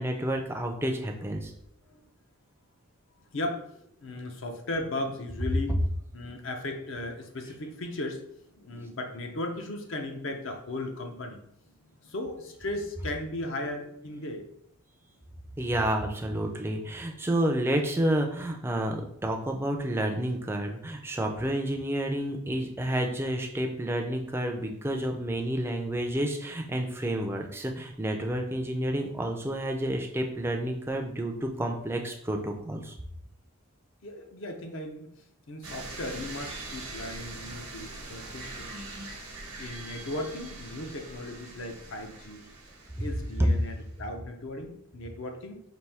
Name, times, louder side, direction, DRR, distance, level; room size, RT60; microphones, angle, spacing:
voice 1, 0.0-1.5 15.6-32.9, right 1 dB, 10° right, 2 dB, 0.4 m, -30 dB
voice 2, 4.0-5.8 6.1-8.2 8.5-11.4 12.0-14.4 34.0-35.1 35.5-38.9 39.6-42.5 43.0-45.6, left 1 dB, 60° left, 3 dB, 0.6 m, -36 dB
sound 1, 35.6-43.9, right 2 dB, 85° right, 1.0 m, -42 dB
4.3 x 2.6 x 3.4 m, 0.73 s
head